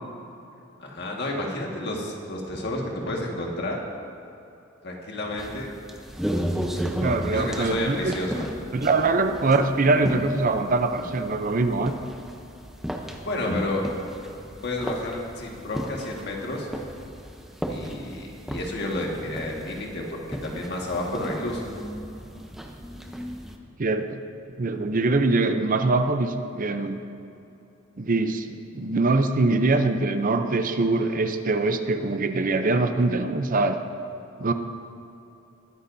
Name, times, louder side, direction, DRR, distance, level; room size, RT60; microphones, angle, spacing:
voice 1, 0.8-3.8 4.8-5.7 7.3-8.5 13.2-13.8 14.6-16.7 17.7-21.6, left 1 dB, 55° left, -1 dB, 1.7 m, -30 dB
sound 1, 5.4-23.6, equal, ahead, 0.7 m, -35 dB
voice 2, 7.0-8.1 8.7-11.9 23.8-24.2 24.6-27.0 28.0-33.8 34.4-34.5, right 3 dB, 40° right, 8 dB, 0.6 m, -23 dB
21.0 x 9.8 x 2.7 m, 2.8 s
head